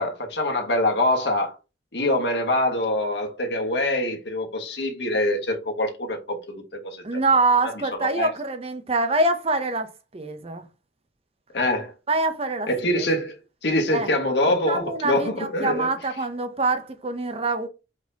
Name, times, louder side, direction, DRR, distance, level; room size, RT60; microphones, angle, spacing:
voice 1, 0.0-1.6 1.9-7.2 8.0-8.3 11.5-11.9 12.7-13.4 13.6-15.9, left 1 dB, 75° left, 1.5 m, -24 dB
voice 2, 7.0-10.6 12.1-13.1 13.9-14.1 14.7-17.7, right 2 dB, 35° right, 0.6 m, -25 dB
4.8 x 4.0 x 2.8 m
head